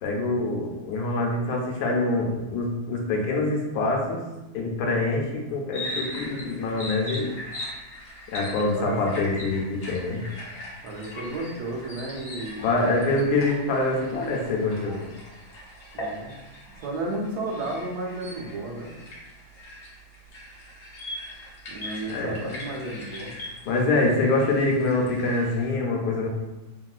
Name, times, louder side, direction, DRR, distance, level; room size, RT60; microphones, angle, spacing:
voice 1, 0.0-4.2 4.5-7.3 8.3-10.2 12.6-15.0 22.1-22.4 23.6-26.3, left 2 dB, 85° left, -1 dB, 1.2 m, -25 dB
sound 1, 5.7-25.7, equal, 50° left, 0.9 m, -40 dB
voice 2, 10.8-12.7 15.9-16.3 16.7-18.9 21.7-23.4, right 2 dB, 80° right, 0 dB, 1.2 m, -33 dB
3.0 x 2.7 x 2.3 m, 1.0 s
omnidirectional pair, 1.6 m